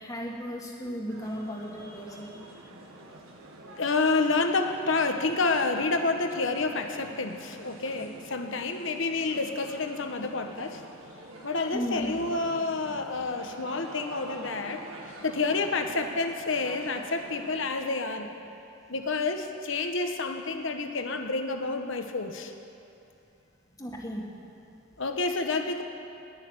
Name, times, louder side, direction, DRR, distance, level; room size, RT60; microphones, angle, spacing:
voice 1, 0.0-2.5 11.7-12.2 12.9-13.2 23.8-24.5, equal, 15° left, -1 dB, 1.7 m, -36 dB
sound 1, 1.1-17.7, right 2 dB, 85° right, 1.8 m, -47 dB
voice 2, 3.8-10.8 11.4-18.3 18.9-22.5 25.0-25.8, left 3 dB, 65° left, 6 dB, 1.1 m, -29 dB
18.5 x 6.6 x 9.7 m, 2.7 s
head